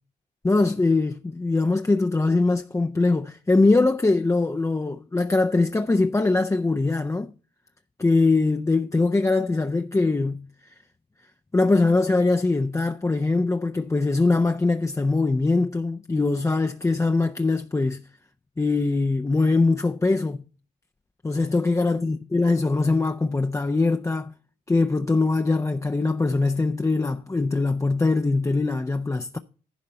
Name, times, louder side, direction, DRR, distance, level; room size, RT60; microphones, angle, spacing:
voice 1, 0.4-7.3 8.0-10.5 11.5-18.1 18.6-20.4 21.2-24.3 24.7-29.4, left 3 dB, 15° left, 0.6 m, -22 dB
11.0 x 4.0 x 7.6 m
supercardioid pair, 60°, 18 cm